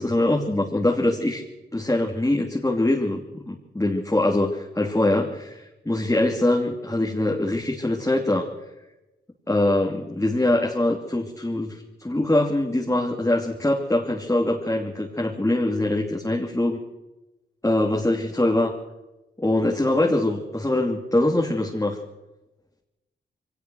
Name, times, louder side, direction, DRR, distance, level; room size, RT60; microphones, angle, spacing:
voice 1, 0.0-1.4 1.7-8.5 9.5-16.8 17.6-18.8 19.4-22.0, left 1 dB, 15° left, -1 dB, 2.9 m, -23 dB
22.5 x 18.5 x 6.4 m, 1.0 s
cardioid pair, 60°, 19 cm